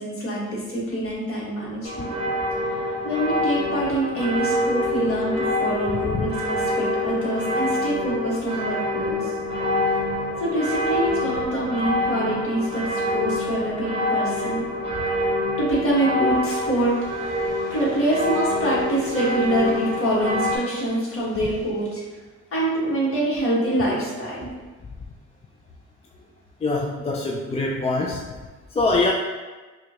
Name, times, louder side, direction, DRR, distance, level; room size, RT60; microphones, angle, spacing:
voice 1, 0.0-2.1 3.0-9.3 10.4-14.7 15.6-22.1 22.5-24.5, right 1 dB, 45° left, -6 dB, 1.5 m, -25 dB
sound 1, 1.8-20.6, left 1 dB, 20° right, 0.9 m, -26 dB
voice 2, 26.6-28.3 28.7-29.1, left 3 dB, 20° left, -1 dB, 0.4 m, -23 dB
4.8 x 2.3 x 2.9 m, 1.3 s
cardioid pair, 90°, 30 cm